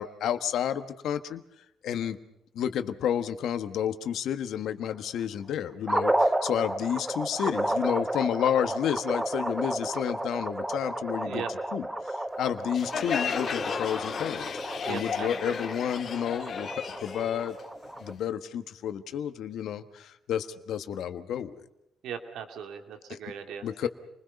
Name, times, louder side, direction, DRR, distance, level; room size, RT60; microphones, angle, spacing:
voice 1, 0.0-1.4 1.8-2.2 2.5-11.9 12.4-17.6 18.0-21.7 23.1-23.2 23.6-23.9, left 9 dB, 75° left, 10 dB, 1.4 m, -31 dB
sound 1, 5.9-18.1, right 1 dB, 10° right, 1.2 m, -32 dB
Crowd, 12.7-18.2, left 7 dB, 55° left, 2.2 m, -34 dB
voice 2, 14.8-15.7 22.0-23.9, right 7 dB, 80° right, 5 dB, 2.4 m, -39 dB
30.0 x 21.0 x 5.4 m, 0.84 s
cardioid pair, 90°, 0 cm